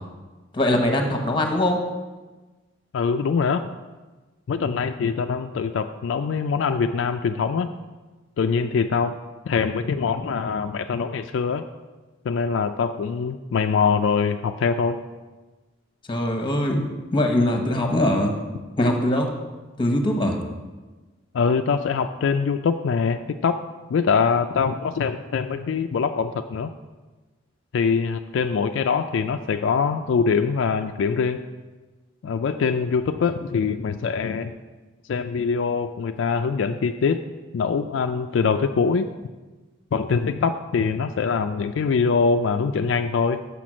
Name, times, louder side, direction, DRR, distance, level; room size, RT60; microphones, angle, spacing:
voice 1, 0.5-1.8 16.1-18.3 18.8-19.3 19.8-20.4, left 1 dB, 25° left, 4 dB, 1.0 m, -22 dB
voice 2, 2.9-3.7 4.5-7.7 8.4-9.2 9.4-11.7 12.3-15.0 21.3-23.6 23.9-26.7 27.7-31.4 32.2-34.5 35.1-37.2 37.5-39.1 39.9-43.4, left 5 dB, 70° left, 7 dB, 0.3 m, -23 dB
7.0 x 5.9 x 6.1 m, 1.3 s
head